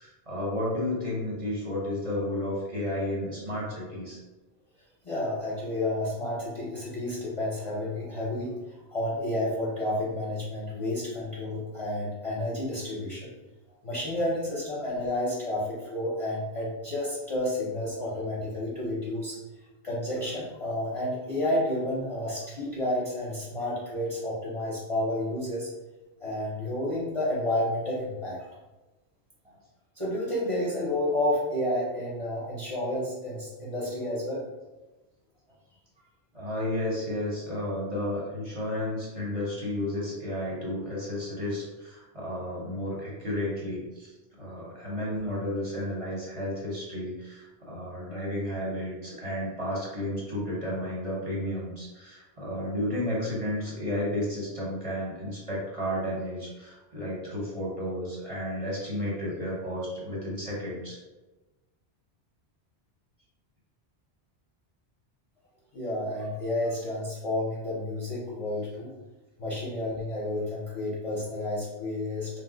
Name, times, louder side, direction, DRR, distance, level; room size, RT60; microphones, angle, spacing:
voice 1, 0.0-4.2 8.0-8.1 10.8-10.9 36.3-61.0, left 1 dB, 35° right, -6 dB, 0.8 m, -32 dB
voice 2, 5.0-8.5 8.9-13.3 13.8-19.4 19.8-25.7 26.2-28.5 30.0-34.4 65.7-68.9 69.4-72.4, left 1 dB, 40° left, -6 dB, 0.5 m, -30 dB
2.6 x 2.0 x 3.7 m, 1.1 s
omnidirectional pair, 1.1 m